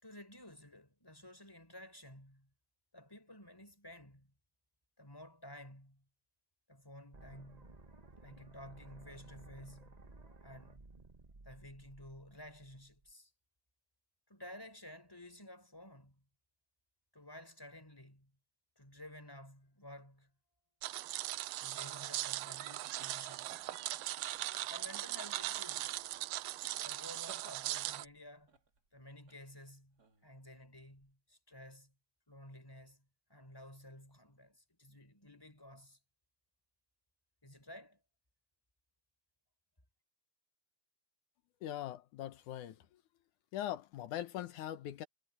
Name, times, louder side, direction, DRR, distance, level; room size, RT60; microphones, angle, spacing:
voice 1, 0.0-2.5 2.9-4.3 5.0-6.0 6.7-7.8 8.2-10.0 10.4-10.9 11.4-13.3 14.3-16.2 17.1-18.3 18.8-20.3 21.6-23.7 24.7-26.0 26.8-28.5 28.9-31.9 32.3-33.0 33.3-36.0 37.4-38.0, left 1 dB, 5° left, 5.4 m, -53 dB
sound 1, 7.1-13.1, right 2 dB, 55° right, 0.4 m, -57 dB
sound 2, 20.8-28.1, right 15 dB, 75° right, 1.5 m, -39 dB
sound 3, 23.0-31.1, right 5 dB, 35° right, 2.9 m, -63 dB
voice 2, 41.6-42.8 43.5-45.1, left 12 dB, 85° left, 2.5 m, -41 dB
omnidirectional pair, 3.4 m